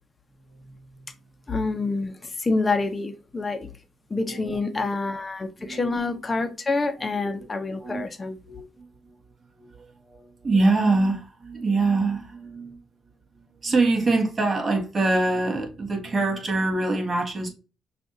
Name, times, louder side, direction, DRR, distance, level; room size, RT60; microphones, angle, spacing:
voice 1, 0.5-1.0 4.2-4.9 5.6-6.1 7.0-8.0 8.4-8.8 9.6-12.8 13.4-17.5, right 3 dB, 35° right, 1.5 m, -25 dB
voice 2, 1.5-3.7 4.1-8.4, left 3 dB, 25° left, 0.8 m, -27 dB
6.0 x 2.5 x 2.7 m
cardioid pair, 90°, 0 cm